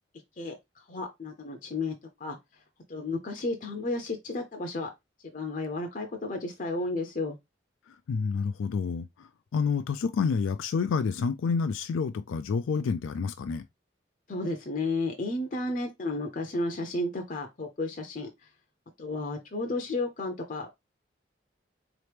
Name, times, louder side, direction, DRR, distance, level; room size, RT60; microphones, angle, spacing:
voice 1, 0.4-1.9 2.2-2.4 2.9-4.9 5.3-7.4 14.3-18.3 19.0-20.7, left 2 dB, 40° left, 0.6 m, -32 dB
voice 2, 8.1-13.6, left 5 dB, 90° left, 0.3 m, -29 dB
4.1 x 3.0 x 3.3 m
head